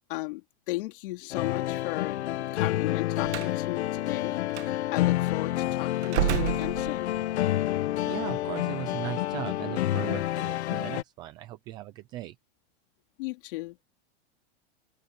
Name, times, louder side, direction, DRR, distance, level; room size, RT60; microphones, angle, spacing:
voice 1, 0.1-2.2 2.5-7.1 13.2-13.8, left 20 dB, 50° left, 3.4 m, -36 dB
sound 1, 1.3-11.0, left 14 dB, 75° left, 1.5 m, -29 dB
Slam, 3.2-3.6 4.5-4.7 6.0-7.3, right 14 dB, 80° right, 2.1 m, -29 dB
voice 2, 8.1-12.3, right 15 dB, 15° right, 0.3 m, -38 dB
open air
supercardioid pair, 170°, 34 cm